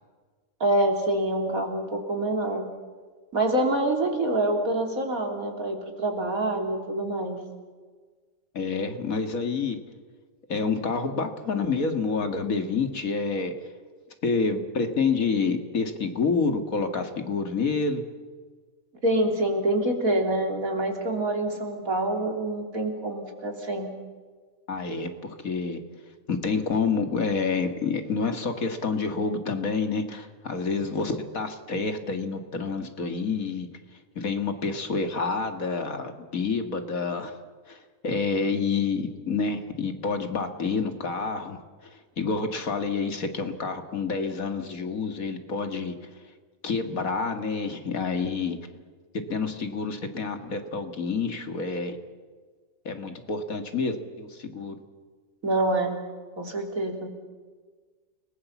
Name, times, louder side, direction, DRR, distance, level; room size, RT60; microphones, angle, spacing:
voice 1, 0.6-2.7 3.3-7.4 19.0-24.0 55.4-56.0 56.4-57.1, right 1 dB, 85° right, 3 dB, 3.8 m, -26 dB
voice 2, 8.5-9.8 10.5-13.6 14.2-18.0 24.7-25.8 26.3-33.7 34.2-37.3 37.7-46.1 46.6-48.6 49.1-52.0 52.8-54.8, left 4 dB, 85° left, 6 dB, 2.5 m, -28 dB
29.0 x 20.0 x 7.2 m, 1.5 s
omnidirectional pair, 1.4 m